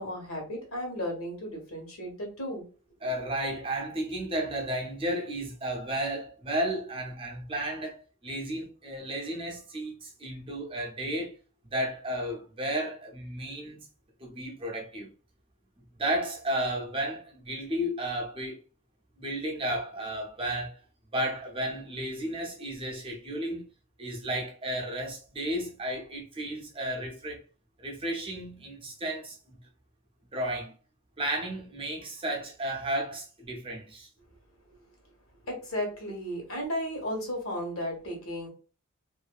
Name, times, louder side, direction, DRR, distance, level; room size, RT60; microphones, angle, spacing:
voice 1, 0.0-2.6 35.4-38.5, equal, 70° left, 1.2 m, -34 dB
voice 2, 3.0-11.3 11.6-13.9 14.2-15.1 15.9-18.6 19.2-20.8 21.1-23.7 24.0-27.4 27.8-29.6 30.3-30.7 31.2-34.1, right 1 dB, 25° right, 0.6 m, -33 dB
2.6 x 2.5 x 2.3 m
head